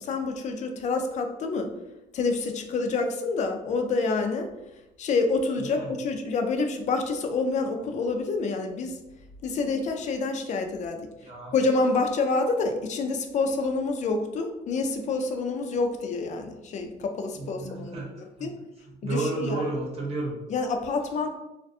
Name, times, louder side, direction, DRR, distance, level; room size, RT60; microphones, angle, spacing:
voice 1, 0.0-1.7 2.1-4.5 5.0-9.0 9.4-11.1 11.5-18.5 19.0-19.7 20.5-21.3, left 3 dB, 45° left, 5 dB, 0.4 m, -27 dB
voice 2, 5.6-5.9 11.2-11.5 17.3-18.1 18.4-18.5 18.9-20.4, right 2 dB, 35° right, -2 dB, 0.9 m, -31 dB
2.5 x 2.3 x 2.4 m, 0.96 s
cardioid pair, 110°, 17 cm